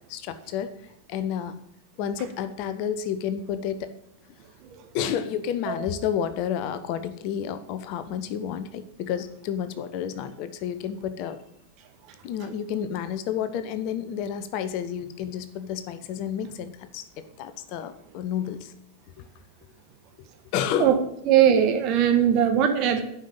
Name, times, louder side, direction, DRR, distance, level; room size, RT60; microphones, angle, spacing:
voice 1, 0.1-0.7 1.1-1.6 2.0-3.9 4.9-11.4 12.2-17.0 17.4-18.7 19.2-19.3 20.5-21.0, left 9 dB, 45° left, 11 dB, 1.0 m, -30 dB
voice 2, 21.3-23.0, right 9 dB, 40° right, 6 dB, 1.8 m, -20 dB
11.0 x 5.8 x 8.7 m, 0.80 s
figure-of-eight pair, 90°, 0 cm